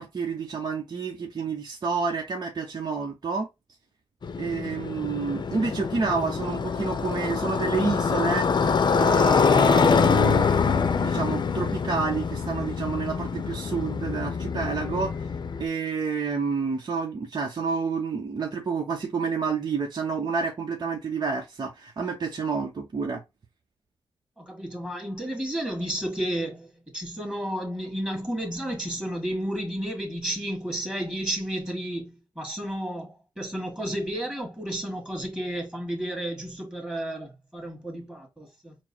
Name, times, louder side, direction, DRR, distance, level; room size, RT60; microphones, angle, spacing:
voice 1, 0.0-3.5 4.4-8.5 8.9-15.1 15.6-23.2, right 5 dB, 50° right, 0.9 m, -29 dB
Motorcycle, 4.2-15.7, left 5 dB, 55° left, 0.6 m, -24 dB
voice 2, 24.4-38.8, right 1 dB, 10° right, 1.9 m, -32 dB
4.5 x 2.1 x 4.4 m
cardioid pair, 70°, 9 cm